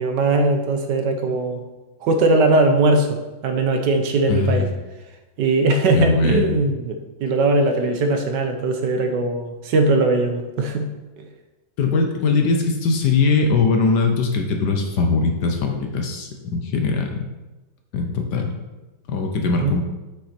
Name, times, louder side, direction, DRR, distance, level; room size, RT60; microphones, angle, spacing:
voice 1, 0.0-1.6 2.0-4.7 5.4-10.9 11.2-11.3 19.6-19.8, right 2 dB, 65° right, 6 dB, 1.3 m, -20 dB
voice 2, 4.3-4.7 5.9-6.6 11.8-17.3 17.9-18.5 19.1-19.8, left 4 dB, 65° left, 3 dB, 1.3 m, -21 dB
7.8 x 6.2 x 4.3 m, 1.1 s
omnidirectional pair, 2.2 m